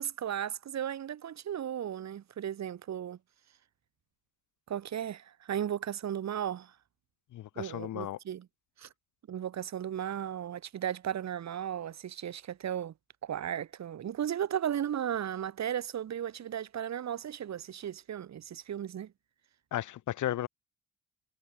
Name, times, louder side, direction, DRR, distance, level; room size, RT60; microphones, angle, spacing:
voice 1, 0.0-3.2 4.7-6.7 7.6-8.5 8.8-8.9 9.3-12.9 13.2-19.1, right 10 dB, 60° right, 4.6 m, -35 dB
voice 2, 7.3-8.2 19.7-20.5, left 13 dB, 75° left, 3.6 m, -34 dB
cardioid pair, 90°, 30 cm